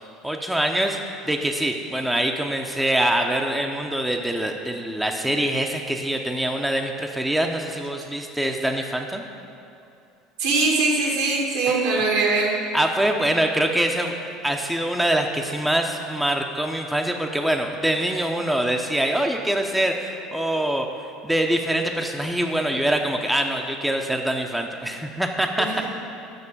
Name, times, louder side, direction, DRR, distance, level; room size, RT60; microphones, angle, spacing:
voice 1, 0.2-1.0 1.2-9.2 12.7-14.1 14.4-20.9 21.2-25.7, right 1 dB, 5° right, 3 dB, 0.7 m, -24 dB
voice 2, 10.4-12.5 25.6-25.9, right 3 dB, 80° right, -2 dB, 1.9 m, -22 dB
6.8 x 5.9 x 7.3 m, 2.5 s
hypercardioid pair, 85°, 0 cm